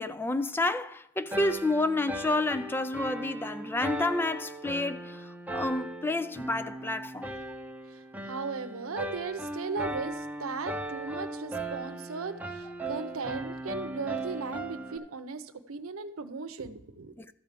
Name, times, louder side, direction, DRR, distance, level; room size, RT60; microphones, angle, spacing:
voice 1, 0.0-7.3 17.2-17.3, left 2 dB, 10° left, 0.3 m, -30 dB
sound 1, 1.3-15.0, right 1 dB, 10° right, 0.7 m, -38 dB
voice 2, 8.3-17.1, right 4 dB, 90° right, 0.7 m, -37 dB
13.0 x 4.6 x 7.5 m
head